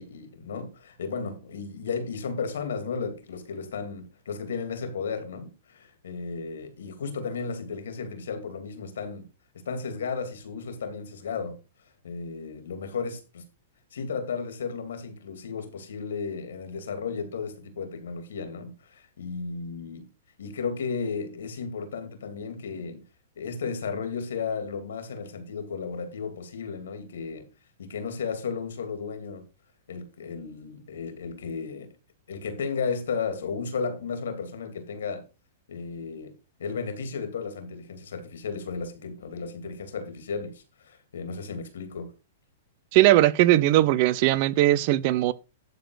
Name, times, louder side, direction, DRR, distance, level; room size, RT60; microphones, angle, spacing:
voice 1, 0.0-9.3 9.5-11.6 12.0-13.4 13.9-20.1 20.4-23.0 23.4-27.5 27.8-29.4 29.9-31.9 32.3-35.2 35.7-36.3 36.6-42.1, left 5 dB, 85° left, 2.9 m, -34 dB
voice 2, 42.9-45.3, right 15 dB, 45° right, 0.7 m, -19 dB
11.5 x 4.0 x 6.5 m
hypercardioid pair, 140°, 0 cm